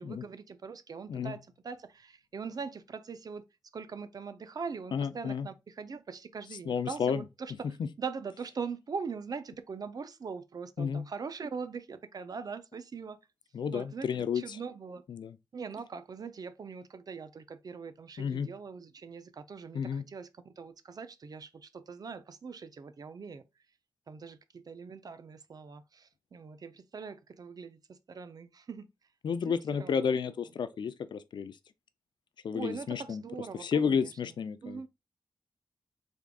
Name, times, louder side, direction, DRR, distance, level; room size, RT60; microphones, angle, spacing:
voice 1, 0.0-3.4 3.7-13.2 13.7-14.1 14.3-15.0 15.5-23.6 24.1-28.9 29.5-30.1 32.5-34.1 34.6-34.9, right 5 dB, 55° right, 0.5 m, -42 dB
voice 2, 4.9-5.5 6.7-7.2 7.8-7.9 10.8-11.0 13.5-14.6 15.1-15.4 18.2-18.5 19.7-20.0 29.2-31.6 32.4-33.2 33.6-34.9, left 6 dB, 70° left, 0.4 m, -31 dB
3.5 x 3.5 x 2.2 m
cardioid pair, 80°, 8 cm